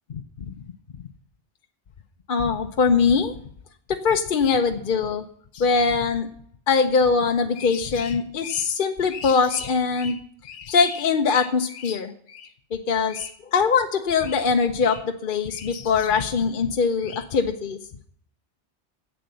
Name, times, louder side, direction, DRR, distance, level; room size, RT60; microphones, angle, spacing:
voice 1, 2.3-3.4 3.9-5.3 5.5-6.3 6.7-10.2 10.4-17.8, left 5 dB, 50° left, 5 dB, 0.9 m, -22 dB
11.0 x 7.8 x 7.7 m, 0.63 s
omnidirectional pair, 1.2 m